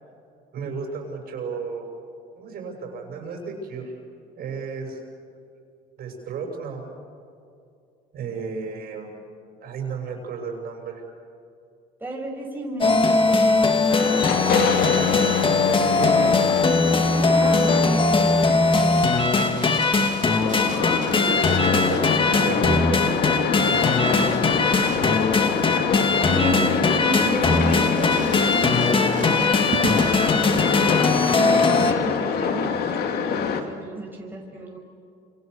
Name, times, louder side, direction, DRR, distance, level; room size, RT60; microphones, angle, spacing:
voice 1, 0.5-1.9 2.4-4.0 4.4-5.0 6.0-6.9 8.1-9.1 9.6-11.0 15.6-16.5 19.7-19.8 20.7-20.8 21.0-23.8, right 5 dB, 65° right, 2 dB, 7.2 m, -33 dB
voice 2, 12.0-15.2 17.3-18.8 19.5-20.2 26.3-29.5 30.2-31.1 31.3-34.8, right 2 dB, 10° right, -1 dB, 5.9 m, -33 dB
sound 1, 12.8-31.9, left 3 dB, 30° left, 2.5 m, -20 dB
sound 2, 13.9-33.6, left 6 dB, 70° left, 2.4 m, -26 dB
Crumpling crinkling, 14.2-16.8 18.7-22.2 23.7-26.1 26.5-26.6 27.4-30.4 31.8-32.2, right 6 dB, 50° right, 3.2 m, -38 dB
29.0 x 27.0 x 6.8 m, 2.5 s
cardioid pair, 110°, 17 cm